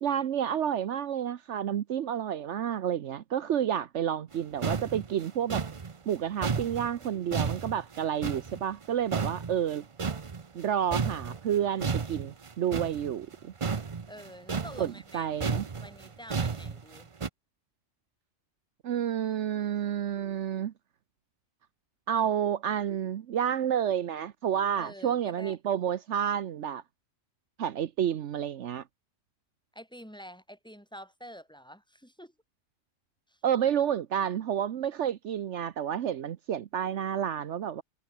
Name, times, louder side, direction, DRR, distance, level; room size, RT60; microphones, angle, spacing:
voice 1, 0.0-5.6 6.1-9.8 10.5-13.5 14.8-15.7 18.8-20.7 22.1-26.8 27.6-28.8 33.4-37.8, right 9 dB, 70° right, 1.1 m, -30 dB
sound 1, 4.3-4.4 4.6-8.9 9.1-10.7 10.9-17.3, right 5 dB, 30° right, 0.7 m, -33 dB
voice 2, 14.1-17.1 24.8-25.6 29.7-32.3 33.3-33.4, equal, 5° left, 7.1 m, -47 dB
omnidirectional pair, 1.2 m